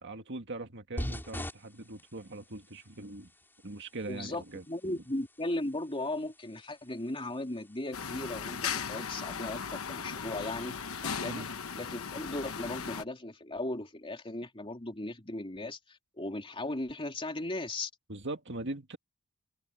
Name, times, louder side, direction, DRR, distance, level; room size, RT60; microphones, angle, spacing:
voice 1, 0.0-3.3 3.6-5.0 11.2-11.5 18.1-19.0, right 2 dB, 55° right, 2.0 m, -41 dB
sound 1, 1.0-9.7, equal, 10° left, 4.9 m, -46 dB
voice 2, 4.1-10.7 11.0-11.5 11.7-17.9, left 1 dB, 25° left, 3.2 m, -37 dB
sound 2, 7.9-13.0, left 6 dB, 70° left, 1.2 m, -37 dB
head